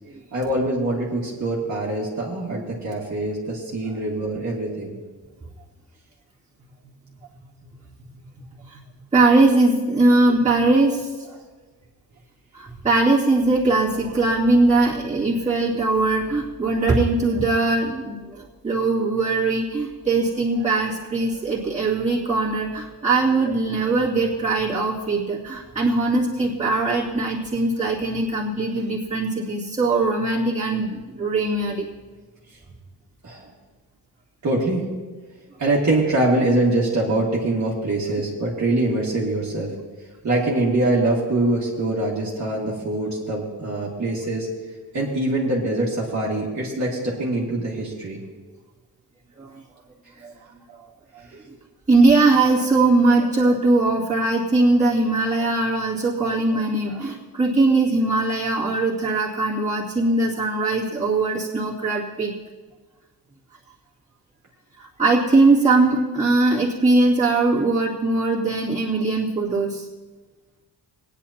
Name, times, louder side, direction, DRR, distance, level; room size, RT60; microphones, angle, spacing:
voice 1, 0.3-5.0 6.6-7.7 8.1-8.2 8.5-9.0 33.2-33.5 34.4-34.9 35.6-39.7 40.2-44.5 44.9-48.2 51.2-51.5, right 2 dB, 40° right, -4 dB, 2.0 m, -24 dB
voice 2, 9.1-11.3 12.5-31.8 49.4-49.6 50.2-50.3 51.9-62.3 65.0-69.8, right 2 dB, 15° right, -8 dB, 2.5 m, -20 dB
20.0 x 9.9 x 2.9 m, 1.3 s
wide cardioid pair, 150°, 41 cm